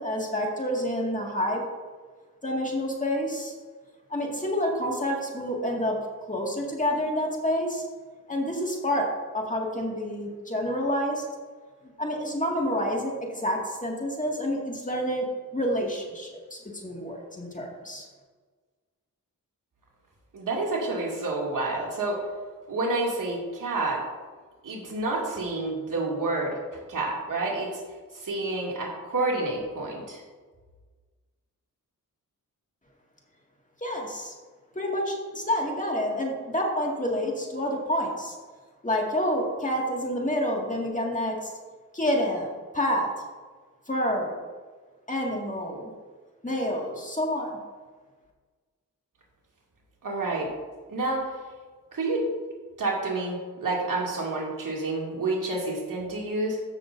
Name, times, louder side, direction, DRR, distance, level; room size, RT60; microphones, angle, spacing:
voice 1, 0.0-1.6 2.4-3.5 4.1-6.0 6.3-7.8 8.3-9.1 9.3-11.3 12.0-15.3 15.5-18.1 33.8-34.3 34.8-38.4 38.8-41.5 41.9-43.1 43.9-44.4 45.1-45.9 46.4-47.5, equal, 20° left, -1 dB, 1.9 m, -28 dB
voice 2, 20.3-22.2 22.7-24.0 24.6-26.6 26.9-27.8 28.1-30.2 50.0-50.5 50.9-51.3 51.9-52.3 52.8-56.6, right 2 dB, 65° right, -3 dB, 2.4 m, -29 dB
14.0 x 6.7 x 2.6 m, 1.4 s
cardioid pair, 65°, 34 cm